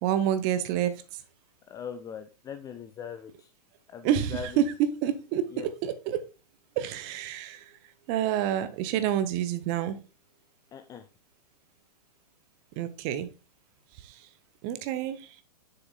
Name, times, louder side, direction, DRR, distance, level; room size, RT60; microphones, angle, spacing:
voice 1, 0.0-1.2 4.0-4.6 5.0-6.2 6.8-7.8 8.1-10.0 12.8-13.3 14.0-14.2 14.6-15.4, right 11 dB, 35° right, 12 dB, 0.7 m, -28 dB
voice 2, 1.7-3.5 3.9-4.6 5.5-5.7 10.7-11.1, left 7 dB, 15° left, 8 dB, 0.5 m, -40 dB
7.2 x 6.8 x 2.3 m, 0.32 s
figure-of-eight pair, 105°, 21 cm